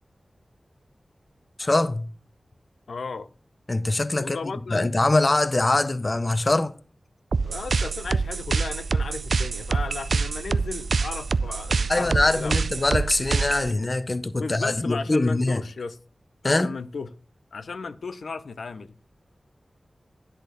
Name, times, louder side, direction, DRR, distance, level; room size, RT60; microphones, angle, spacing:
voice 1, 1.6-2.1 3.7-4.4 4.7-6.8 11.9-15.6 16.4-16.7, left 2 dB, 30° left, 0.6 m, -23 dB
voice 2, 2.9-3.3 4.2-4.9 7.4-12.7 14.4-16.0 16.4-17.1 17.5-19.0, left 4 dB, 85° left, 0.5 m, -35 dB
sound 1, 7.3-13.7, right 4 dB, 75° right, 0.4 m, -26 dB
10.5 x 4.3 x 6.6 m
wide cardioid pair, 105°, 0 cm